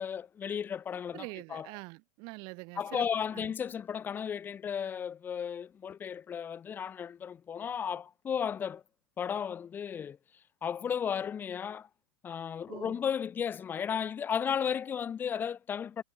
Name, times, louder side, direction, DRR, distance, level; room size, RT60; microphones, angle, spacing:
voice 1, 0.0-1.7 2.8-8.8 9.2-10.2 10.6-11.9 12.2-16.0, left 8 dB, 15° left, 3.7 m, -34 dB
voice 2, 1.1-3.1 3.3-3.5 12.7-13.0, right 30 dB, 35° right, 5.7 m, -44 dB
supercardioid pair, 170°, 14 cm